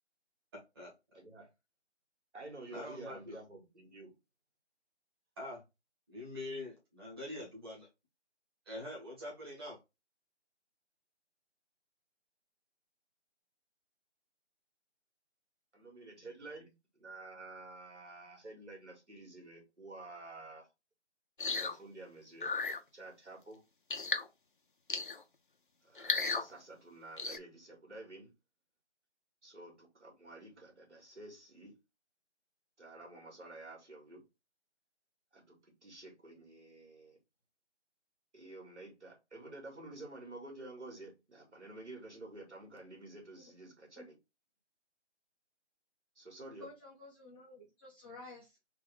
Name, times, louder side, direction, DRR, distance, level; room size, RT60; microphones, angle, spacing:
voice 1, 0.5-0.9 2.7-3.4 5.4-5.6 6.1-7.9 8.6-9.8, left 1 dB, 20° right, 1.6 m, -44 dB
voice 2, 1.1-1.5 2.3-4.1 15.7-20.7 21.5-23.6 25.8-28.3 29.4-31.7 32.8-34.2 35.3-37.2 38.3-44.2 46.2-46.7, right 2 dB, 75° right, 2.4 m, -50 dB
sound 1, 21.4-21.8 22.4-22.8 23.9-24.3 24.9-25.2 26.0-26.5 27.2-27.4, left 4 dB, 50° left, 0.4 m, -34 dB
voice 3, 46.6-48.6, left 3 dB, 10° left, 0.9 m, -52 dB
3.6 x 3.0 x 3.5 m
figure-of-eight pair, 160°, 35 cm